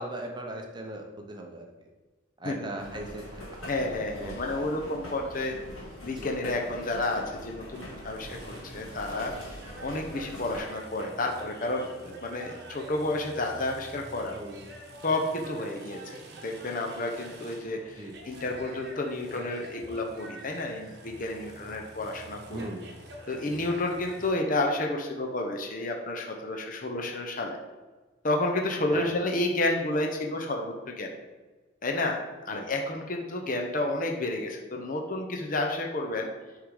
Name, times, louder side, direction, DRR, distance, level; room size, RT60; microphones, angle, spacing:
voice 1, 0.0-1.9 2.4-3.4 3.8-4.9 6.1-6.3 14.3-14.6 18.0-18.1 22.5-22.9 28.9-29.1 32.5-32.6, right 1 dB, 20° right, 2 dB, 0.7 m, -39 dB
sound 1, 2.8-10.6, equal, 90° left, 1.7 m, -43 dB
voice 2, 3.7-5.5 6.0-9.3 9.8-14.4 15.0-16.0 16.4-22.6 23.3-27.6 28.2-31.1 31.8-36.3, left 2 dB, 40° left, 2 dB, 0.7 m, -31 dB
sound 2, 7.7-24.3, right 2 dB, 50° right, 1.0 m, -47 dB
6.5 x 3.7 x 4.8 m, 1.3 s
head